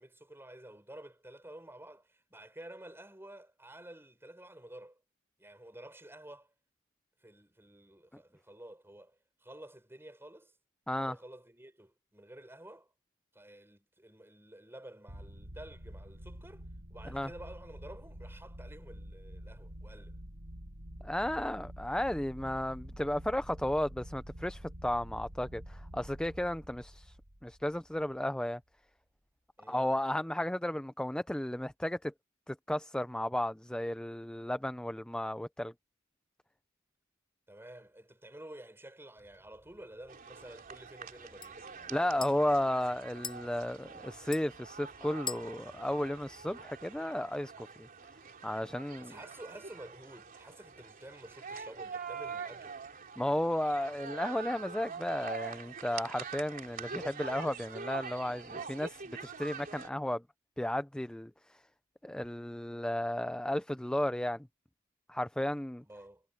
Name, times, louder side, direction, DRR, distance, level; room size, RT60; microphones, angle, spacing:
voice 1, 0.0-5.0 5.4-6.5 7.2-10.5 10.9-12.9 13.3-20.2 29.6-29.9 37.5-42.6 49.0-52.8 65.8-66.2, right 1 dB, 10° right, 5.2 m, -51 dB
sound 1, 15.1-28.4, equal, 70° right, 5.7 m, -48 dB
voice 2, 21.0-27.2 27.4-28.6 29.7-32.1 32.5-35.7 41.9-47.9 48.4-49.2 53.2-60.2 60.6-61.6 62.0-64.5 65.1-65.8, left 1 dB, 5° left, 0.4 m, -34 dB
sound 2, 39.2-47.0, left 6 dB, 25° left, 5.2 m, -48 dB
sound 3, 40.1-59.9, right 5 dB, 45° right, 3.2 m, -45 dB
head